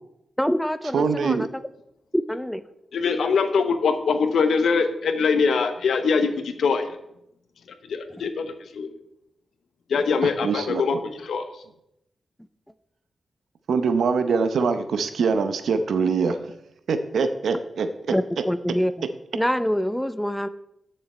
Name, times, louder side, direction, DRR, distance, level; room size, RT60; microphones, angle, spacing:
voice 1, 0.4-1.6 2.1-2.6 18.1-19.1 19.3-20.5, equal, 5° left, 13 dB, 0.6 m, -25 dB
voice 2, 0.9-1.5 10.2-10.8 13.7-16.4 16.9-17.9, right 5 dB, 85° right, 10 dB, 0.7 m, -23 dB
voice 3, 2.9-6.9 7.9-8.9 9.9-11.6, left 5 dB, 85° left, 9 dB, 0.9 m, -23 dB
9.6 x 6.7 x 4.3 m, 0.81 s
cardioid pair, 75°, 0 cm